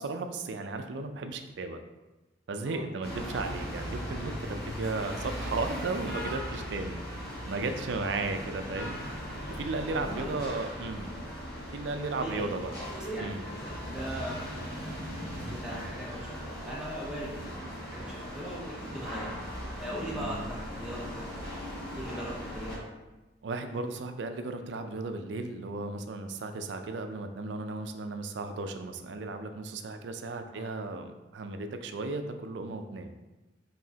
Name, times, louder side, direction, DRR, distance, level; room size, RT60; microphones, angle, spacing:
voice 1, 0.0-1.8 2.5-7.0 7.5-9.0 9.5-11.1 11.7-12.7 13.2-13.4 20.1-20.5 23.4-33.1, right 3 dB, 75° right, 7 dB, 0.4 m, -35 dB
sound 1, 3.0-22.8, equal, 55° left, 1.1 m, -38 dB
voice 2, 9.9-10.4 12.2-12.6 13.1-19.4 19.8-21.5 21.9-22.9 30.5-30.7, equal, 5° right, -6 dB, 0.5 m, -40 dB
4.8 x 3.2 x 2.7 m, 1.1 s
head